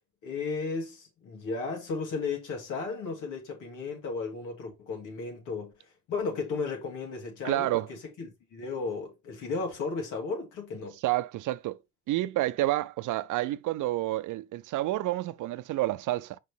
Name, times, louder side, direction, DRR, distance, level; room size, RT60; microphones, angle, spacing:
voice 1, 0.2-5.7 6.1-11.0, left 4 dB, 85° left, 2.8 m, -34 dB
voice 2, 7.4-7.9 11.0-11.8 12.1-16.4, right 16 dB, 85° right, 0.6 m, -29 dB
6.1 x 5.0 x 3.5 m
cardioid pair, 90°, 30 cm